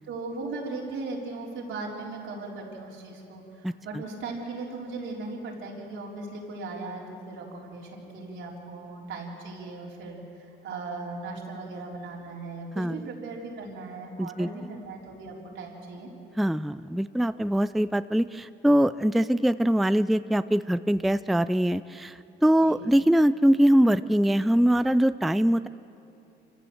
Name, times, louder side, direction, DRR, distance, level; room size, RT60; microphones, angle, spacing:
voice 1, 0.1-16.1 22.6-22.8, right 3 dB, 80° right, -2 dB, 4.1 m, -38 dB
voice 2, 14.2-14.5 16.4-25.7, equal, ahead, 14 dB, 0.4 m, -23 dB
25.5 x 15.5 x 7.9 m, 2.8 s
cardioid pair, 90°, 20 cm